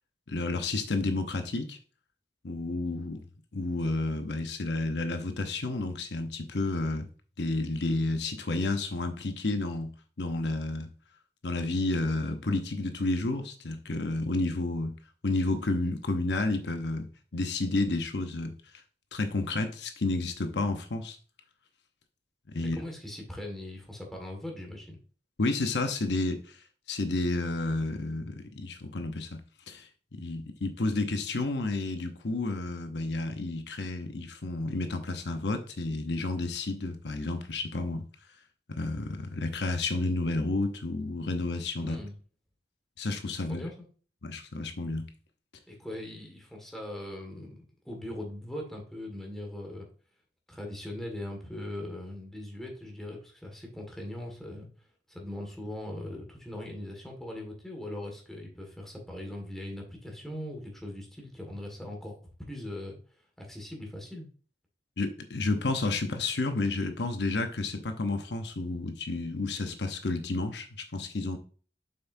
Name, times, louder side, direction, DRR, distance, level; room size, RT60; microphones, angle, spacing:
voice 1, 0.3-1.8 2.4-3.2 3.5-7.1 7.4-10.9 11.4-14.9 15.2-18.6 19.1-21.2 22.5-22.8 25.4-38.1 38.7-42.0 43.0-43.7 44.2-45.1 65.0-71.4, left 2 dB, 70° left, 0.9 m, -31 dB
voice 2, 22.5-25.0 41.7-42.1 43.3-43.7 45.7-49.9 50.5-54.7 55.1-62.2 62.5-63.0 63.4-64.3, left 1 dB, ahead, 1.8 m, -40 dB
7.5 x 5.8 x 2.7 m
head